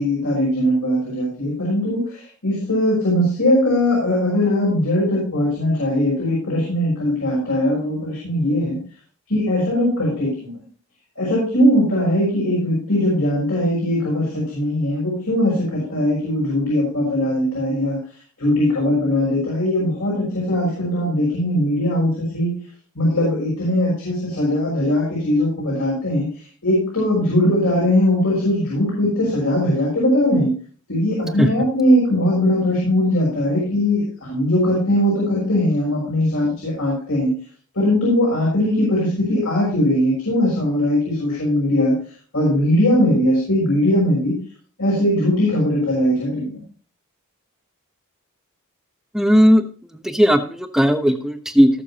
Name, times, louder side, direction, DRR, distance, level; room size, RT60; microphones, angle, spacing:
voice 1, 0.0-8.8 9.3-10.6 11.2-18.0 18.4-22.5 22.9-26.3 26.6-30.5 30.9-37.3 37.7-41.9 42.3-44.3 44.8-46.6, left 1 dB, 70° left, -6 dB, 6.2 m, -20 dB
voice 2, 49.1-49.6 50.0-51.7, equal, ahead, 6 dB, 0.9 m, -15 dB
18.5 x 6.9 x 2.9 m, 0.42 s
head